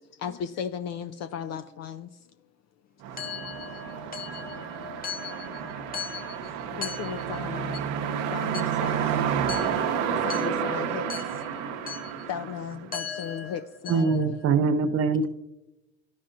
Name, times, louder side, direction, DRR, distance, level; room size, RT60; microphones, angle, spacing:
voice 1, 0.1-2.3 3.8-4.0 4.3-4.5 6.7-7.8 8.3-9.4 10.1-14.4, left 8 dB, 45° left, 0.4 m, -37 dB
sound 1, 3.0-13.3, right 8 dB, 75° right, 0.8 m, -30 dB
voice 2, 3.2-7.2 9.5-10.5 11.1-11.2 11.9-12.3 12.9-13.6 13.9-14.3, left 6 dB, 25° left, 1.1 m, -38 dB
sound 2, 8.9-11.8, right 3 dB, ahead, 0.9 m, -41 dB
voice 3, 13.9-15.3, right 5 dB, 40° right, 0.5 m, -23 dB
12.5 x 5.5 x 2.5 m
hypercardioid pair, 75°, 37 cm